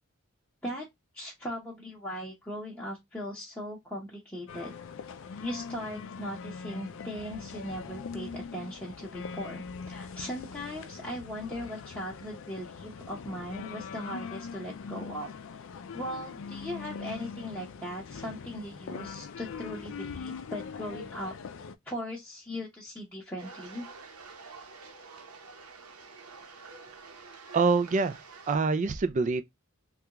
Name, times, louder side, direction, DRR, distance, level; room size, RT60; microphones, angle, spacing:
voice 1, 1.1-4.7 5.4-15.3 15.9-21.3 21.9-23.9, equal, 10° left, 0.8 m, -39 dB
sound 1, 4.5-21.8, left 5 dB, 60° left, 0.4 m, -42 dB
sound 2, 23.4-28.6, right 4 dB, 80° right, 0.9 m, -48 dB
voice 2, 27.5-28.2 28.5-29.4, right 4 dB, 35° right, 0.3 m, -25 dB
3.4 x 2.4 x 2.8 m
head